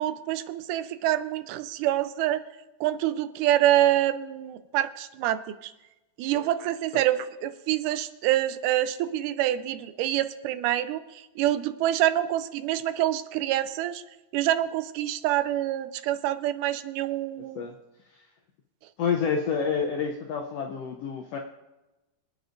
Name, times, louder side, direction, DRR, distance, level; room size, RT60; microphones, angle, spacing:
voice 1, 0.0-2.4 2.8-5.7 6.2-11.0 11.4-14.0 14.3-17.6, right 13 dB, 85° right, 12 dB, 2.1 m, -26 dB
voice 2, 19.0-21.4, left 6 dB, 80° left, 1 dB, 1.4 m, -28 dB
25.0 x 9.2 x 2.6 m, 1.0 s
omnidirectional pair, 3.7 m